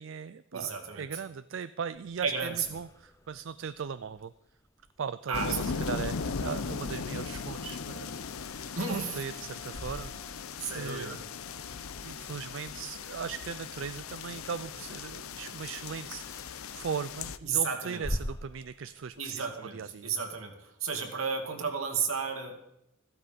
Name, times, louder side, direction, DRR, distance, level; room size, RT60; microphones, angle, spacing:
voice 1, 0.0-4.3 5.0-8.2 9.1-10.1 10.7-11.2 12.0-16.5 16.7-20.1, right 6 dB, 60° right, 14 dB, 0.4 m, -38 dB
voice 2, 0.5-1.1 2.2-2.7 5.3-5.8 8.8-9.2 10.6-11.2 17.4-18.0 19.2-22.6, right 5 dB, 80° right, 3 dB, 2.4 m, -33 dB
sound 1, 1.9-19.5, left 1 dB, 15° left, 0.8 m, -47 dB
sound 2, 5.3-17.4, left 5 dB, 90° left, 0.7 m, -38 dB
Wind instrument woodwind instrument, 5.4-12.2, left 2 dB, 70° left, 3.3 m, -54 dB
15.0 x 12.5 x 5.2 m, 0.85 s
head